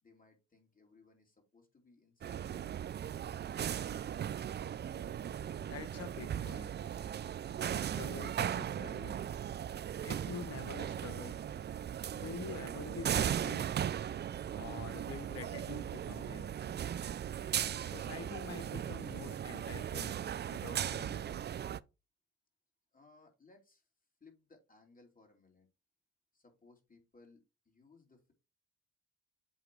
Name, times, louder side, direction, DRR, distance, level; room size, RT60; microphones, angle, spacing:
voice 1, 0.0-2.5 22.9-23.9 24.2-25.7 26.3-28.3, left 3 dB, 30° left, 2.8 m, -63 dB
sound 1, 2.2-21.8, right 9 dB, 35° right, 0.4 m, -38 dB
voice 2, 5.7-6.8 7.7-9.2 10.0-11.4 12.1-13.7 14.5-16.5 17.8-20.2 20.5-21.4, left 7 dB, 55° left, 1.2 m, -47 dB
8.2 x 3.0 x 4.7 m
supercardioid pair, 65°, 30 cm